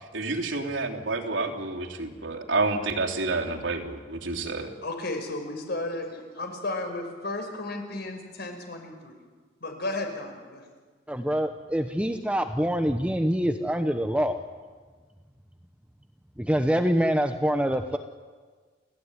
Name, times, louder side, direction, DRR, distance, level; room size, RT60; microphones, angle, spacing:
voice 1, 0.1-4.7, right 3 dB, 80° right, 1 dB, 3.3 m, -29 dB
voice 2, 4.8-9.1 9.6-10.7, left 2 dB, 60° left, 5 dB, 5.3 m, -34 dB
voice 3, 11.1-14.4 16.4-18.0, equal, 5° right, 6 dB, 1.0 m, -25 dB
30.0 x 15.5 x 9.8 m, 1.5 s
head